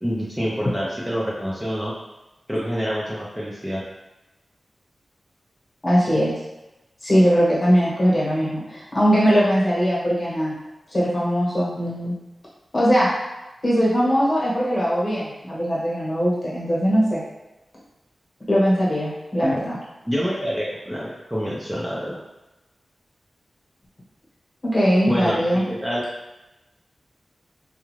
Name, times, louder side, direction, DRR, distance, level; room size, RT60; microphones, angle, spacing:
voice 1, 0.0-1.9 2.5-3.8 19.4-19.6 20.1-22.2 25.1-26.0, equal, 5° right, -7 dB, 0.5 m, -26 dB
voice 2, 5.8-6.3 7.0-10.6 10.9-12.1 12.7-13.1 13.6-17.2 18.5-19.8 24.6-25.6, equal, 35° left, -7 dB, 1.1 m, -20 dB
2.4 x 2.3 x 3.1 m, 1.0 s
wide cardioid pair, 85°, 0 cm